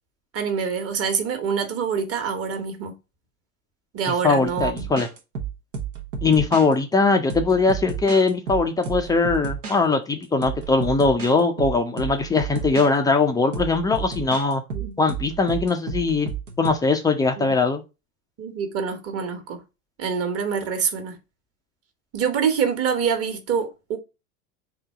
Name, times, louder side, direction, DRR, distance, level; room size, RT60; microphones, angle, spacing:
voice 1, 0.3-3.0 3.9-4.8 14.7-15.0 17.4-17.5 18.4-19.6 20.0-21.2 22.1-24.0, right 6 dB, 30° right, 1.2 m, -25 dB
voice 2, 4.2-5.1 6.2-14.6 15.0-16.3 16.6-17.8, left 3 dB, 10° left, 0.4 m, -21 dB
sound 1, 4.5-6.7 7.3-9.8 10.4-11.3 11.6-12.9 13.5-16.7, right 6 dB, 80° right, 1.0 m, -32 dB
3.8 x 2.7 x 4.5 m
figure-of-eight pair, 80°, 45 cm